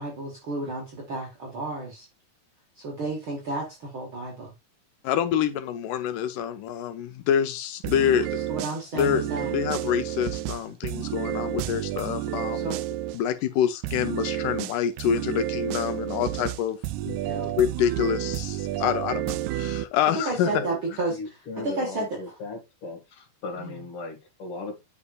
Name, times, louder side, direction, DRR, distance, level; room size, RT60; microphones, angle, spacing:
voice 1, 0.0-2.1 2.8-4.5 8.5-9.5 9.8-10.0 12.5-12.8 17.2-17.6 20.3-22.1 23.6-23.8, right 2 dB, 45° right, 2.2 m, -32 dB
voice 2, 5.0-8.4 8.9-12.7 13.1-16.8 17.1-17.2 17.6-20.6, left 9 dB, 80° left, 2.4 m, -26 dB
sound 1, 7.8-13.2 13.8-19.8, right 13 dB, 85° right, 1.7 m, -31 dB
voice 3, 20.5-20.8 21.1-24.8, left 3 dB, 45° left, 2.8 m, -37 dB
9.6 x 5.6 x 2.5 m
omnidirectional pair, 3.8 m